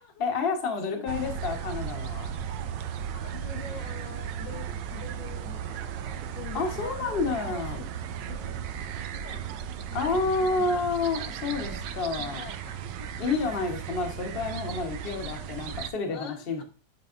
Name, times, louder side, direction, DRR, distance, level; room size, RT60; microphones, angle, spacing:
voice 1, 0.0-2.3 6.5-7.8 9.9-12.4 13.2-16.6, left 4 dB, 35° left, 3 dB, 1.2 m, -29 dB
voice 2, 0.8-1.4 3.0-11.0 12.1-13.2 15.0-15.2 16.1-16.6, left 5 dB, 85° left, 4 dB, 1.8 m, -46 dB
sound 1, 1.1-15.9, right 8 dB, 80° right, 1.3 m, -36 dB
8.7 x 5.4 x 2.5 m, 0.36 s
omnidirectional pair, 1.9 m